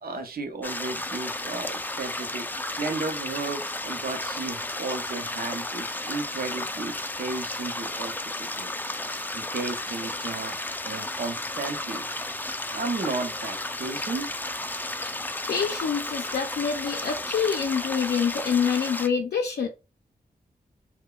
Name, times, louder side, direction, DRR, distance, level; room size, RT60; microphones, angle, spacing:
voice 1, 0.0-2.5 2.8-8.7 9.3-10.6 10.8-12.0 12.3-12.4 12.7-14.3, right 3 dB, 70° right, 5 dB, 0.6 m, -34 dB
sound 1, 0.6-19.1, left 2 dB, 10° left, 0.3 m, -33 dB
voice 2, 15.5-19.7, left 6 dB, 85° left, 1 dB, 0.4 m, -26 dB
2.3 x 2.1 x 3.6 m, 0.29 s
cardioid pair, 55°, 16 cm